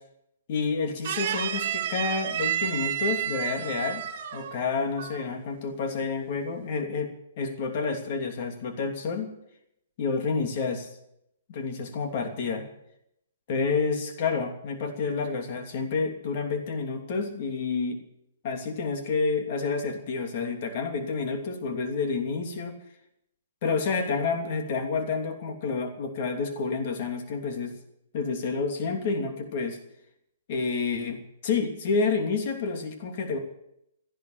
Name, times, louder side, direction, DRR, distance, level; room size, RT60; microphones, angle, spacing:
voice 1, 0.5-4.0 4.3-9.3 10.0-10.9 11.5-12.7 13.5-18.0 18.4-22.8 23.6-27.8 28.1-29.8 30.5-33.4, left 4 dB, 50° left, 4 dB, 3.0 m, -29 dB
sound 1, 1.0-4.7 5.0-5.3, right 10 dB, 50° right, 1.9 m, -30 dB
14.5 x 11.0 x 8.3 m, 0.79 s
hypercardioid pair, 145°, 0 cm